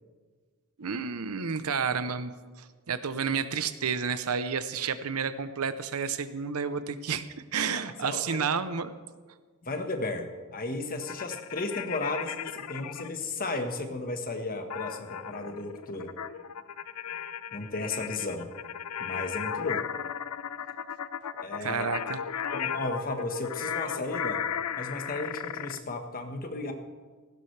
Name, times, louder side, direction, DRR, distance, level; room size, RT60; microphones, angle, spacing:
voice 1, 0.8-2.3 2.6-7.3 7.5-8.9 21.6-22.2, right 6 dB, 75° right, 12 dB, 0.8 m, -30 dB
voice 2, 7.6-8.5 9.6-16.1 17.5-18.5 19.0-19.8 21.4-21.9 22.5-24.4 24.8-26.7, left 2 dB, 40° left, 5 dB, 1.4 m, -34 dB
sound 1, 11.0-13.1 14.7-25.8, left 8 dB, 90° left, 0.5 m, -35 dB
17.5 x 16.0 x 3.3 m, 1.5 s
head